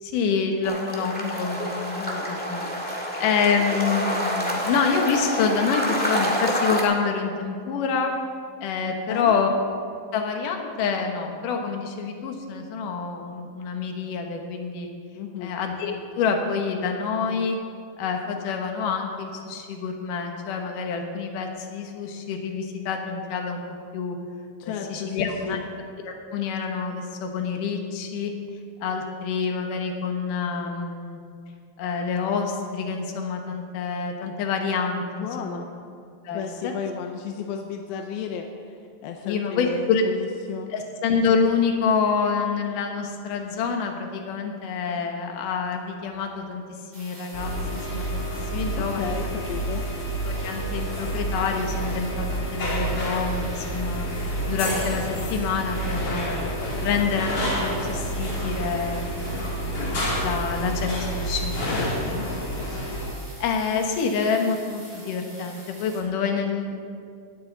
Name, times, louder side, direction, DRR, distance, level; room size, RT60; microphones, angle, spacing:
voice 1, 0.0-8.1 8.6-9.5 10.1-14.9 15.4-17.6 18.0-23.6 23.9-24.2 24.6-25.6 26.0-28.3 28.8-31.2 31.8-35.6 36.2-36.7 39.2-40.0 40.7-46.6 46.9-48.2 48.5-49.2 50.2-54.1 54.5-56.4 56.8-61.7 62.1-62.3 63.4-66.8, left 5 dB, 65° left, 3 dB, 2.7 m, -27 dB
sound 1, 0.6-6.8, equal, 5° left, 0.8 m, -27 dB
voice 2, 15.2-15.5 24.6-25.6 35.2-35.7 36.3-40.7 48.8-49.8 61.7-62.3, left 7 dB, 85° left, 4 dB, 2.6 m, -33 dB
sound 2, 46.9-66.0, right 1 dB, 15° right, 2.3 m, -45 dB
sound 3, 47.3-63.1, right 1 dB, 40° left, 3.4 m, -29 dB
18.0 x 13.5 x 4.0 m, 2.3 s
omnidirectional pair, 4.2 m